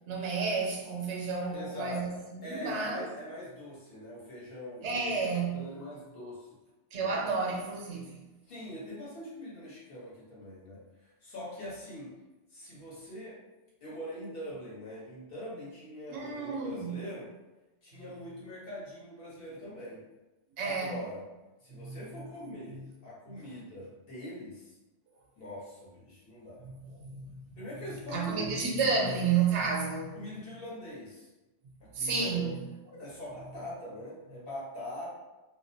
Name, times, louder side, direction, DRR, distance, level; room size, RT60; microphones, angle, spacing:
voice 1, 0.1-3.1 4.8-5.7 6.9-8.2 16.1-17.0 20.6-21.0 21.7-22.0 23.4-23.5 26.6-27.4 28.1-30.1 31.9-32.6, right 5 dB, 75° right, -1 dB, 0.9 m, -31 dB
voice 2, 1.5-2.0 2.4-5.2 5.5-6.5 7.0-7.3 8.5-12.1 12.5-13.4 13.8-17.3 17.8-20.0 20.6-21.2 21.6-22.8 23.0-24.7 25.4-26.6 27.6-28.5 30.1-31.3 31.8-32.5 32.9-35.0, left 1 dB, 55° left, -8 dB, 1.1 m, -43 dB
2.5 x 2.0 x 2.6 m, 1.1 s
omnidirectional pair, 1.2 m